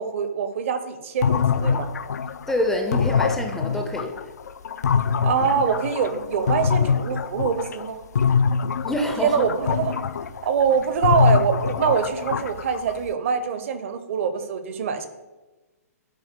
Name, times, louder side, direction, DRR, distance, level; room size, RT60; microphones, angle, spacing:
voice 1, 0.0-1.9 5.2-8.0 9.2-9.9 10.4-15.1, right 6 dB, 50° right, 10 dB, 0.6 m, -24 dB
sound 1, 1.2-7.9 8.1-13.1, left 6 dB, 85° left, 0.4 m, -24 dB
voice 2, 2.5-4.2 8.8-9.5, left 1 dB, 5° left, 3 dB, 0.4 m, -26 dB
7.6 x 2.7 x 5.8 m, 1.1 s
hypercardioid pair, 155°, 9 cm